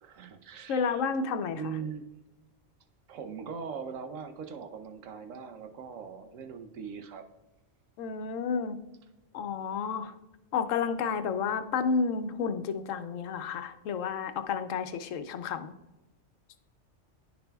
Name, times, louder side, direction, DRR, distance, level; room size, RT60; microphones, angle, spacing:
voice 1, 0.0-1.0 1.6-2.1 3.1-7.2, right 6 dB, 85° right, 7 dB, 1.1 m, -40 dB
voice 2, 0.7-1.6 8.0-8.8 9.3-10.1 10.5-15.7, left 5 dB, 90° left, 10 dB, 1.0 m, -31 dB
10.5 x 6.8 x 2.3 m, 1.0 s
omnidirectional pair, 1.3 m